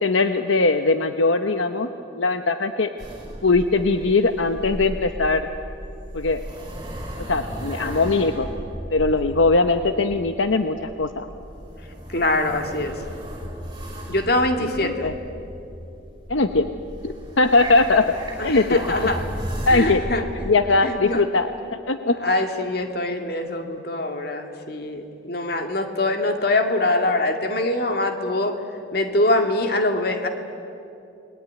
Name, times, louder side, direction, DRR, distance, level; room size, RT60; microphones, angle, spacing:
voice 1, 0.0-1.9 2.1-2.9 3.4-5.5 6.1-6.4 7.3-8.5 8.9-11.3 14.6-15.1 16.3-16.7 17.0-18.1 18.4-18.8 19.7-20.0 20.5-21.5 21.9-22.1, left 3 dB, 80° left, 8 dB, 0.9 m, -20 dB
sound 1, 3.0-20.5, equal, 20° right, 5.6 m, -35 dB
voice 2, 12.1-13.0 14.1-15.1 18.4-19.2 19.7-20.5 20.8-21.2 22.2-28.6 28.9-30.3, left 2 dB, 50° left, 5 dB, 2.3 m, -24 dB
29.5 x 21.0 x 9.5 m, 2.7 s
head